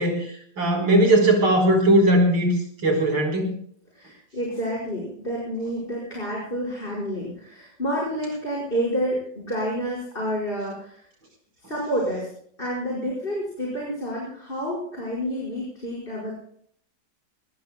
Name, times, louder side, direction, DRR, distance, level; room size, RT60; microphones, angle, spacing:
voice 1, 0.0-2.6 2.8-3.5, right 1 dB, 90° right, 3 dB, 5.2 m, -19 dB
voice 2, 3.9-11.0 11.7-12.3 12.6-16.3, equal, 30° left, -4 dB, 5.6 m, -29 dB
23.5 x 19.5 x 2.3 m, 0.62 s
omnidirectional pair, 2.0 m